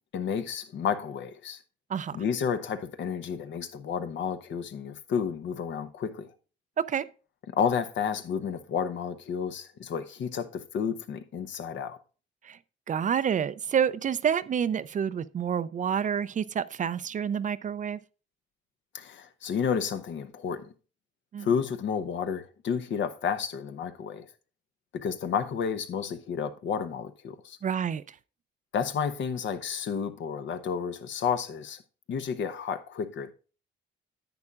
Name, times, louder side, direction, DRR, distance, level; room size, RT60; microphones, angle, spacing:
voice 1, 0.1-1.6 2.1-6.3 7.6-12.0 18.9-20.7 21.4-24.3 24.9-27.6 28.7-31.8 32.1-33.3, left 7 dB, 70° left, 0.9 m, -31 dB
voice 2, 12.9-18.0 21.3-21.5 27.6-28.2, right 8 dB, 40° right, 0.4 m, -28 dB
10.5 x 8.6 x 2.4 m
cardioid pair, 90°, 20 cm